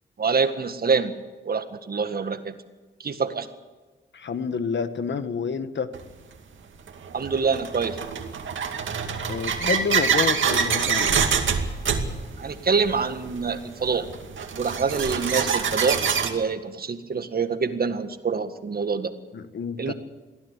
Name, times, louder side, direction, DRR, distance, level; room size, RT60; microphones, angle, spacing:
voice 1, 0.2-1.1 1.5-2.6 3.0-3.5 7.1-8.0 12.4-14.1 14.5-19.1 19.8-19.9, right 5 dB, 50° right, 9 dB, 1.8 m, -26 dB
voice 2, 4.1-5.9 9.3-11.2 19.3-19.9, left 5 dB, 70° left, 11 dB, 1.5 m, -28 dB
sound 1, 5.9-6.0 6.9-16.3, right 6 dB, 85° right, 2.4 m, -25 dB
23.0 x 16.0 x 8.3 m, 1.3 s
cardioid pair, 85°, 20 cm